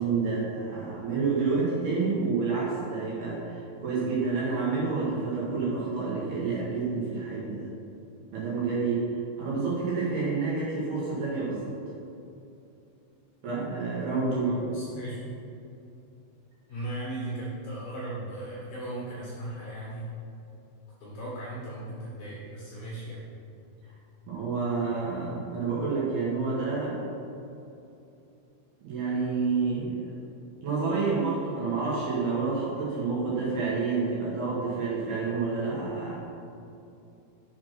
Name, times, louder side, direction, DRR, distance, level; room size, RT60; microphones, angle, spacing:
voice 1, 0.0-7.7 8.3-9.0 9.4-11.7 13.4-14.5 24.3-27.0 28.8-30.1 30.6-36.2, right 4 dB, 65° right, -7 dB, 2.9 m, -29 dB
voice 2, 14.4-15.2 16.7-20.1 21.0-23.2, right 1 dB, 65° left, -7 dB, 2.6 m, -37 dB
7.4 x 4.3 x 6.1 m, 2.8 s
omnidirectional pair, 5.6 m